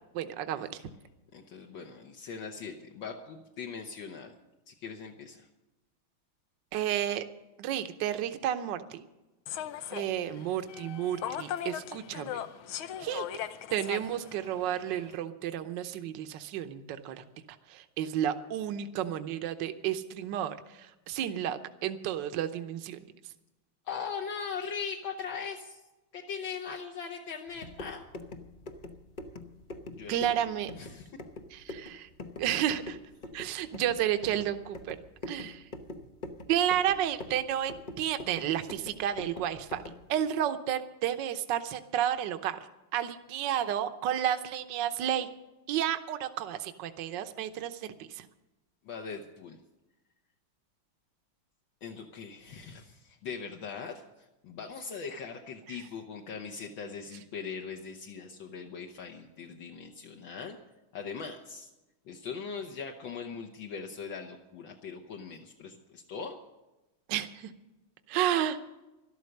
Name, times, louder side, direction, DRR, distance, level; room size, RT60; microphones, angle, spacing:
voice 1, 0.1-0.8 6.7-7.2 7.6-9.0 9.9-12.4 13.0-13.2 13.7-17.2 17.7-23.0 30.1-30.7 31.5-32.1 32.4-33.0 33.3-35.0 35.3-35.6 36.5-37.7 38.0-42.6 42.9-45.3 45.7-48.3 55.7-55.8 67.1-67.5 68.1-68.6, right 10 dB, 65° right, 9 dB, 1.4 m, -31 dB
voice 2, 1.3-4.4 4.7-5.5 23.9-25.8 26.1-28.0 30.0-30.4 30.7-31.1 48.8-49.6 51.8-60.6 60.9-61.7 62.1-66.4, left 6 dB, 70° left, 2 dB, 1.8 m, -40 dB
Human voice / Subway metro underground, 9.5-15.2, left 10 dB, 90° left, 1.6 m, -39 dB
sound 1, 27.5-40.1, left 2 dB, 55° left, 0.5 m, -45 dB
13.0 x 12.5 x 6.6 m, 1.0 s
omnidirectional pair, 2.3 m